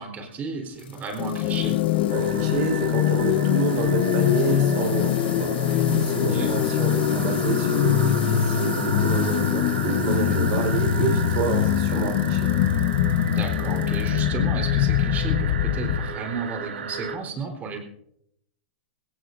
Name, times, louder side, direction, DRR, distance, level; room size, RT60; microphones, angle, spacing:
voice 1, 0.0-1.8 6.3-6.5 13.3-17.8, right 4 dB, 30° right, 4 dB, 3.8 m, -33 dB
sound 1, 0.7-14.2 14.7-15.2 15.8-15.9, left 9 dB, 80° left, 3.3 m, -41 dB
sound 2, 1.2-16.2, left 11 dB, 55° left, 0.9 m, -23 dB
voice 2, 2.1-12.5, right 5 dB, 50° right, 3 dB, 4.5 m, -29 dB
sound 3, 2.1-17.2, right 5 dB, 90° right, 2.3 m, -34 dB
21.0 x 17.5 x 2.6 m, 0.74 s
hypercardioid pair, 125°, 6 cm